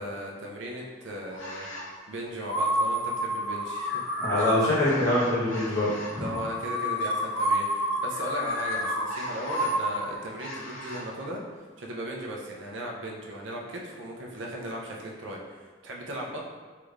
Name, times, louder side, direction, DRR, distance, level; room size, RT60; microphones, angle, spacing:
voice 1, 0.0-1.7 2.1-4.0 6.2-16.4, right 1 dB, 70° right, -1 dB, 0.5 m, -37 dB
sound 1, 1.3-1.9 2.4-11.0, equal, 85° left, 0.5 m, -30 dB
voice 2, 4.2-6.3, left 1 dB, 20° left, -10 dB, 1.1 m, -25 dB
3.3 x 3.2 x 2.4 m, 1.4 s
head